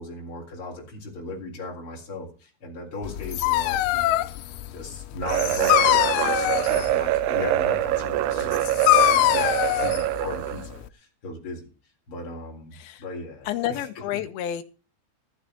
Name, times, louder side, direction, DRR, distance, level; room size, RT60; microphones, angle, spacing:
voice 1, 0.0-4.3 4.7-8.7 9.1-11.7 12.1-13.9 14.1-14.2, left 2 dB, 30° left, 0 dB, 4.2 m, -37 dB
Dog, 3.0-10.9, left 15 dB, 85° left, 3.2 m, -24 dB
sound 1, 5.2-10.7, right 15 dB, 85° right, 3.1 m, -25 dB
voice 2, 12.7-13.0 13.5-14.6, left 11 dB, 70° left, 6 dB, 2.7 m, -30 dB
14.5 x 12.0 x 3.9 m, 0.34 s
omnidirectional pair, 5.3 m